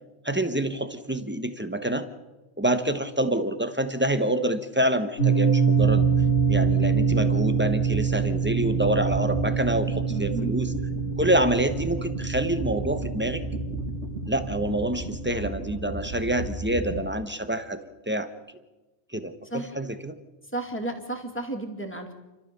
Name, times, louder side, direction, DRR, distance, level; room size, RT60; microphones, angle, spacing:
voice 1, 0.2-2.1 2.6-6.0 6.5-10.7 11.2-13.4 14.3-17.8 18.1-18.3 19.1-20.2, right 1 dB, 10° right, 9 dB, 1.0 m, -27 dB
sound 1, 5.2-15.4, right 6 dB, 75° left, 2.6 m, -25 dB
sound 2, 5.7-17.0, right 2 dB, 55° right, 2.6 m, -34 dB
voice 2, 10.1-10.5 19.5-19.7 20.5-22.1, right 2 dB, 10° left, 3 dB, 2.4 m, -32 dB
29.5 x 12.5 x 6.9 m, 1.1 s
omnidirectional pair, 1.4 m